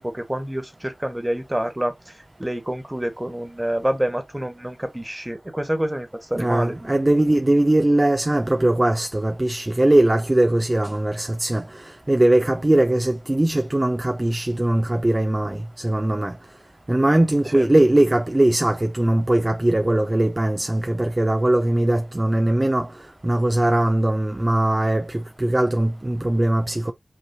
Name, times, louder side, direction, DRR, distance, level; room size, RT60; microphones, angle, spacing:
voice 1, 0.0-6.7 17.5-17.7, right 1 dB, 15° right, 1.7 m, -27 dB
voice 2, 6.4-16.4 16.9-22.9 23.2-26.9, right 1 dB, 30° right, 0.7 m, -20 dB
5.7 x 3.0 x 2.9 m
cardioid pair, 40°, 0 cm